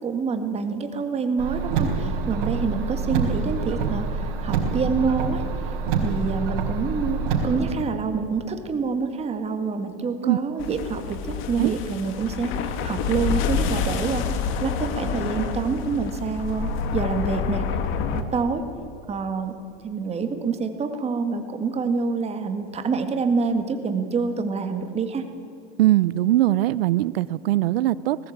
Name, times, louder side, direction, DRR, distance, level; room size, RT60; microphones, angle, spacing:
voice 1, 0.0-5.7 6.0-14.2 14.6-17.7 18.1-18.6 19.1-19.5 19.8-25.2, right 5 dB, 20° right, 7 dB, 2.0 m, -27 dB
Car, 1.4-7.7, right 5 dB, 65° right, 4.2 m, -26 dB
sound 1, 10.6-18.2, left 6 dB, 45° left, 1.8 m, -28 dB
voice 2, 25.8-28.2, right 15 dB, 85° right, 18 dB, 0.7 m, -21 dB
19.5 x 16.0 x 8.8 m, 2.7 s
supercardioid pair, 130°, 29 cm